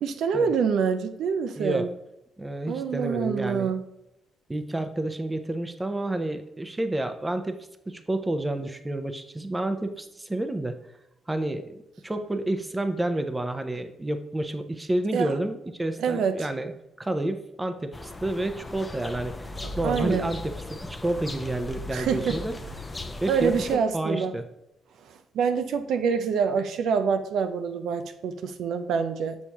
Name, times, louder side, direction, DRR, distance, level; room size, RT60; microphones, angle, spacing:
voice 1, 0.0-1.9 2.7-3.8 15.1-15.3 16.0-16.5 19.6-20.3 21.9-22.4 23.3-24.4 25.1-29.4, right 6 dB, 75° right, 9 dB, 0.5 m, -26 dB
voice 2, 1.6-1.9 2.4-3.7 4.5-7.6 7.9-10.8 11.3-11.8 12.0-16.7 17.0-22.6 23.2-24.4, right 1 dB, 15° right, 8 dB, 0.7 m, -30 dB
sound 1, 17.9-23.8, left 2 dB, 20° left, 0.7 m, -37 dB
6.7 x 6.5 x 2.9 m, 0.85 s
cardioid pair, 90°, 0 cm